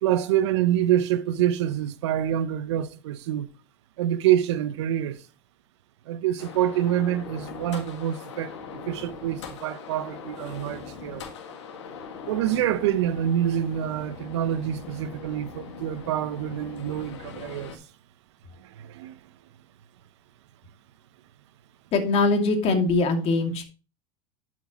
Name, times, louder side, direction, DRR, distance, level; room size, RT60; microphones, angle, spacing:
voice 1, 0.0-3.5 4.0-5.2 6.1-11.2 12.3-17.8 18.6-19.1, right 11 dB, 75° right, 0.7 m, -26 dB
sound 1, 6.4-17.8, left 5 dB, 85° left, 1.9 m, -41 dB
voice 2, 21.9-23.6, left 3 dB, 45° left, 2.4 m, -22 dB
11.5 x 6.0 x 3.0 m
hypercardioid pair, 100°, 15 cm